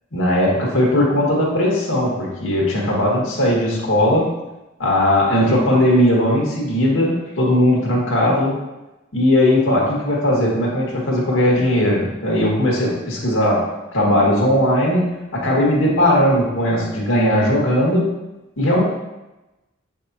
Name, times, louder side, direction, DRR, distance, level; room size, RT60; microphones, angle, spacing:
voice 1, 0.1-4.3 4.8-8.6 9.1-13.7 13.9-18.1 18.6-18.8, left 1 dB, 80° left, -3 dB, 1.8 m, -18 dB
7.0 x 5.4 x 2.9 m, 0.99 s
head